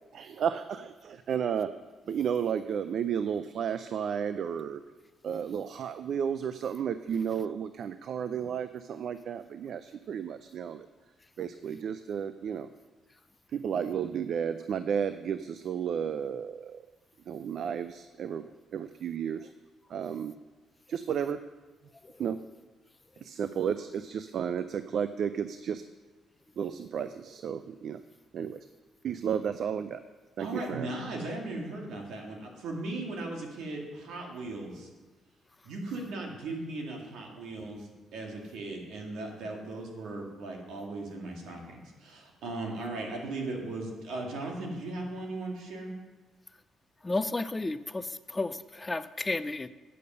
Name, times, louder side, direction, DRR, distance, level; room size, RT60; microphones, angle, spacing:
voice 1, 0.1-1.7 2.1-4.8 5.2-10.9 11.4-12.7 13.5-16.8 17.3-18.4 18.7-19.5 19.9-20.3 20.9-21.4 22.2-22.4 23.2-25.8 26.6-28.0 28.3-28.6 29.0-30.0 30.4-30.9, right 8 dB, 65° right, 12 dB, 0.4 m, -32 dB
voice 2, 30.4-34.9 35.6-45.9, right 2 dB, 80° right, 0 dB, 2.1 m, -37 dB
voice 3, 47.0-49.7, left 2 dB, 20° left, 14 dB, 0.4 m, -32 dB
8.5 x 6.8 x 6.6 m, 1.3 s
cardioid pair, 90°, 0 cm